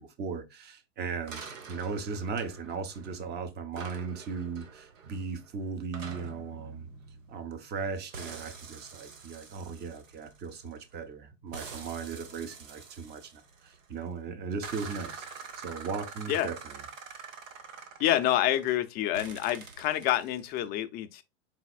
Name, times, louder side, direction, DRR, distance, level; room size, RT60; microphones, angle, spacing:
voice 1, 0.0-1.4 1.7-6.9 7.3-15.3 15.6-16.9, right 5 dB, 25° right, 0.7 m, -37 dB
sound 1, 1.3-3.3 3.7-7.8 8.1-10.9 11.5-14.0 14.6-18.8 19.1-20.6, right 5 dB, 85° right, 1.2 m, -46 dB
voice 2, 18.0-21.2, left 13 dB, 25° left, 0.4 m, -27 dB
4.1 x 4.0 x 2.3 m
hypercardioid pair, 120°, 38 cm